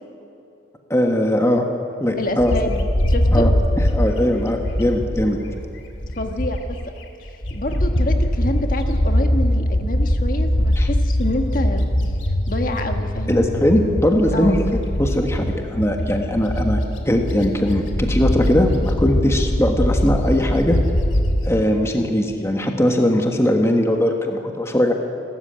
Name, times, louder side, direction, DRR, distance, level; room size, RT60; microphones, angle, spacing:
voice 1, 0.9-1.7 2.0-2.5 3.3-3.5 3.9-5.4 10.8-10.9 13.3-20.8 21.4-24.9, left 1 dB, 15° left, 3 dB, 1.4 m, -20 dB
voice 2, 2.2-3.5 6.2-6.8 7.5-11.9 12.5-13.4 14.3-14.6, left 1 dB, 45° left, 5 dB, 1.5 m, -27 dB
Bird, 2.4-6.9 7.3-21.5, equal, 80° left, 2.3 m, -22 dB
28.0 x 13.5 x 8.8 m, 2.9 s
head